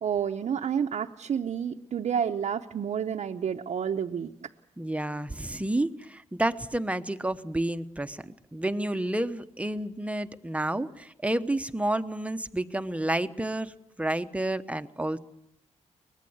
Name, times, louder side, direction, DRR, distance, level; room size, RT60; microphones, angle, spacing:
voice 1, 0.0-4.5, right 8 dB, 70° right, 1 dB, 0.8 m, -30 dB
voice 2, 4.8-13.7 14.0-15.2, right 1 dB, 10° right, 10 dB, 1.0 m, -30 dB
23.5 x 19.5 x 8.0 m, 0.78 s
cardioid pair, 90°, 12 cm